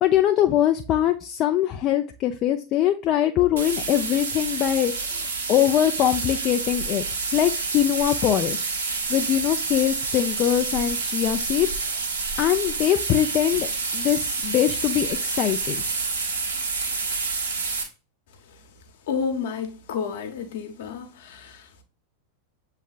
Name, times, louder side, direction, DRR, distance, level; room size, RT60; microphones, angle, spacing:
voice 1, 0.0-7.0 7.3-8.7 9.1-11.7 12.4-13.7 13.9-15.8, left 11 dB, 35° left, 0.3 m, -22 dB
sound 1, 3.6-17.8, right 4 dB, 70° right, 1.2 m, -28 dB
voice 2, 19.1-21.8, left 6 dB, 55° left, 0.9 m, -31 dB
7.0 x 3.2 x 2.3 m
figure-of-eight pair, 90°, 0 cm